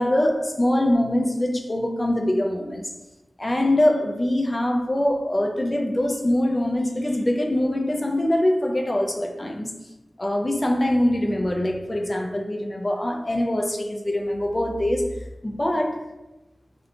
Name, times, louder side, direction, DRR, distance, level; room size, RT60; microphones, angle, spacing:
voice 1, 0.0-2.9 3.4-9.7 10.2-15.1 15.4-16.0, left 1 dB, 25° left, 2 dB, 0.3 m, -23 dB
2.6 x 2.1 x 2.7 m, 1.0 s
wide cardioid pair, 85°, 0 cm